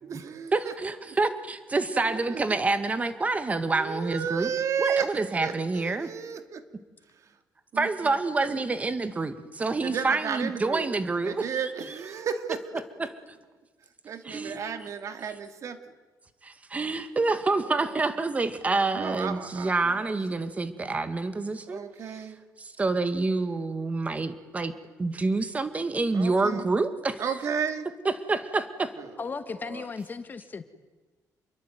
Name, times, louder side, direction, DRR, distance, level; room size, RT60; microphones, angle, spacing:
voice 1, 0.0-0.7 1.1-1.2 2.1-2.6 3.7-5.1 5.4-6.6 7.7-8.1 8.4-8.6 9.8-10.9 11.2-12.6 14.0-15.8 17.8-18.0 18.9-20.1 21.7-22.4 24.2-24.3 26.1-26.7 27.2-27.9 29.0-29.2 29.6-29.9, right 7 dB, 55° right, 8 dB, 2.6 m, -33 dB
voice 2, 0.5-4.5 4.8-6.1 7.8-11.7 13.0-13.1 14.2-14.6 16.4-21.8 22.6-24.7 25.0-27.2 28.1-28.9, right 3 dB, 20° right, 10 dB, 2.1 m, -27 dB
voice 3, 29.2-30.6, left 5 dB, 30° left, 10 dB, 1.6 m, -36 dB
28.0 x 22.5 x 9.4 m, 1.3 s
cardioid pair, 145°, 6 cm